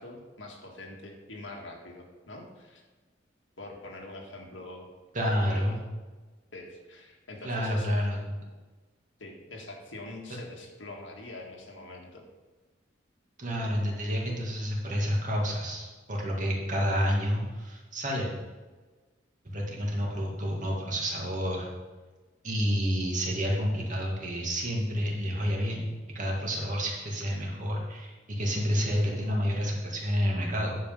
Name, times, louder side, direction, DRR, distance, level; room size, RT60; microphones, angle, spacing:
voice 1, 0.0-2.8 3.6-4.9 5.3-5.8 6.5-8.0 9.2-12.2, left 2 dB, 80° left, 0 dB, 1.8 m, -44 dB
voice 2, 5.1-5.8 7.4-8.3 13.4-18.3 19.4-21.7 22.4-25.9 26.1-30.8, equal, 45° right, -2 dB, 2.1 m, -29 dB
10.0 x 5.3 x 5.5 m, 1.3 s
head